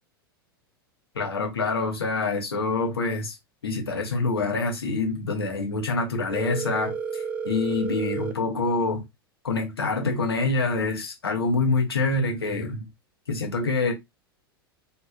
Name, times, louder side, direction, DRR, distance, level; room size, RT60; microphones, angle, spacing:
voice 1, 1.1-3.4 3.6-9.0 9.4-12.9 13.3-13.9, left 3 dB, 80° left, 1.0 m, -26 dB
Telephone, 6.3-8.3, right 5 dB, 10° right, 0.6 m, -31 dB
3.2 x 2.8 x 2.3 m
figure-of-eight pair, 90°, 13 cm